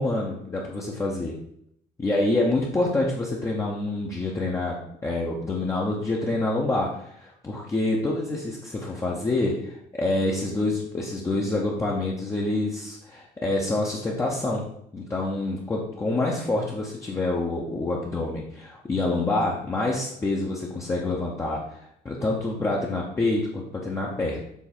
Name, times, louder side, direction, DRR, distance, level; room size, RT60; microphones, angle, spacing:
voice 1, 0.0-1.4 2.0-4.8 5.0-14.6 14.9-24.4, left 2 dB, 15° left, -3 dB, 0.9 m, -27 dB
7.2 x 4.3 x 4.4 m, 0.71 s
cardioid pair, 175°, 17 cm